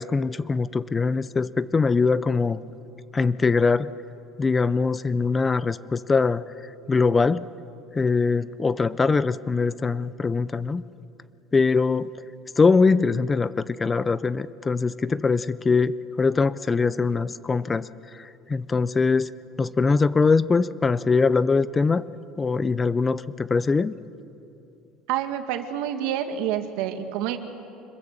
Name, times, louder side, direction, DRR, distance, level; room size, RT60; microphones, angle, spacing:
voice 1, 0.0-2.6 3.1-3.9 4.4-6.4 6.9-7.5 7.9-10.8 11.5-12.1 12.6-17.9 18.1-19.3 19.6-22.0 22.4-23.9, left 4 dB, 20° left, 17 dB, 0.5 m, -22 dB
voice 2, 25.1-27.4, right 10 dB, 75° right, 7 dB, 1.9 m, -28 dB
25.5 x 22.0 x 7.4 m, 2.8 s
cardioid pair, 135°, 0 cm